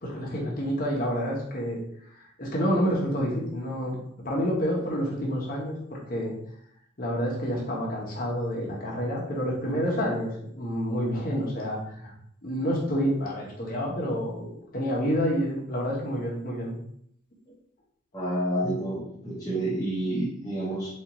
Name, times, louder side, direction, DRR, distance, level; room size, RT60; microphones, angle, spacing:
voice 1, 0.0-1.8 2.4-4.0 4.2-6.4 7.0-12.1 12.4-16.8, equal, 45° left, -3 dB, 0.9 m, -28 dB
voice 2, 18.1-21.0, right 1 dB, 15° left, -7 dB, 0.7 m, -29 dB
4.2 x 2.4 x 2.9 m, 0.68 s
head